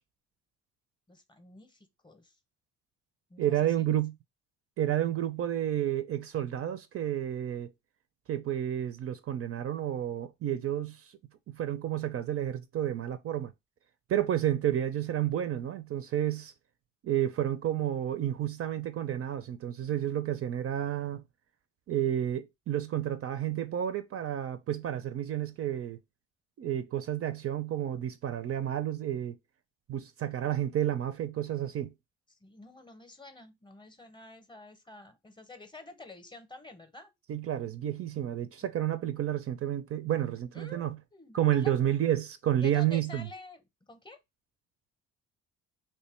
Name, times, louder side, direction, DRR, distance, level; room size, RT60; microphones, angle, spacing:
voice 1, 1.1-2.4 3.3-3.8 32.3-37.1 38.6-38.7 40.5-41.7 42.6-43.6 43.9-44.2, left 3 dB, 15° left, 0.7 m, -49 dB
voice 2, 3.4-4.1 4.8-7.7 8.3-11.1 11.5-13.5 14.1-16.5 17.0-21.2 21.9-26.0 26.6-29.4 29.9-31.9 37.3-41.0 41.3-43.3, right 11 dB, 50° right, 0.4 m, -30 dB
3.1 x 2.2 x 4.2 m
cardioid pair, 90°, 30 cm